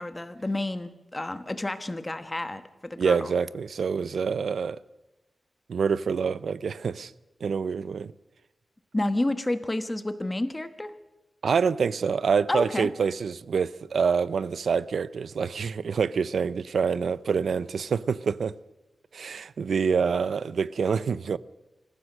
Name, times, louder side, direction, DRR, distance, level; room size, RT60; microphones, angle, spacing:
voice 1, 0.0-3.3 8.9-10.9 12.5-12.9, left 1 dB, 15° left, 1.2 m, -30 dB
voice 2, 3.0-4.8 5.7-7.1 7.4-8.1 11.4-18.5 19.1-21.4, right 6 dB, 90° right, 0.6 m, -26 dB
27.0 x 15.0 x 6.6 m
wide cardioid pair, 160°, 0 cm